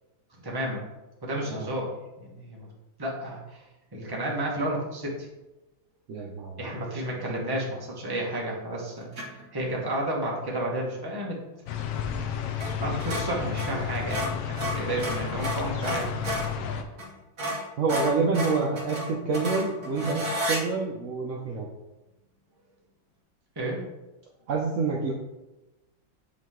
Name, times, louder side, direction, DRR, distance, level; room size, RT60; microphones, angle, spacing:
voice 1, 0.4-0.8 1.2-2.7 3.0-3.6 3.9-5.3 6.6-9.1 9.5-11.4 12.8-16.2 23.6-23.8, right 1 dB, 15° right, -3 dB, 0.9 m, -31 dB
voice 2, 6.1-6.7 17.8-21.7 24.5-25.1, right 4 dB, 70° right, -1 dB, 0.7 m, -27 dB
sound 1, 9.1-9.4 12.5-12.7 13.0-16.5 17.0-17.1 17.4-20.6, equal, 45° right, 1.7 m, -32 dB
sound 2, 11.7-16.8, left 7 dB, 70° left, 0.9 m, -32 dB
8.4 x 3.2 x 3.6 m, 1.0 s
omnidirectional pair, 2.1 m